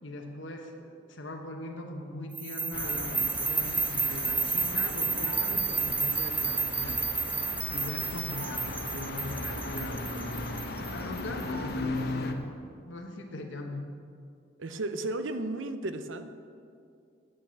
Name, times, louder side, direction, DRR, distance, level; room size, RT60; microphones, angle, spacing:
voice 1, 0.0-7.0 7.7-13.9, left 1 dB, 75° left, 2 dB, 1.2 m, -41 dB
sound 1, 2.3-11.4, right 4 dB, 10° right, 0.4 m, -31 dB
sound 2, 2.7-12.3, left 2 dB, 55° left, 0.9 m, -37 dB
voice 2, 14.6-16.3, right 2 dB, 85° right, 9 dB, 0.7 m, -34 dB
9.0 x 8.8 x 7.5 m, 2.4 s
head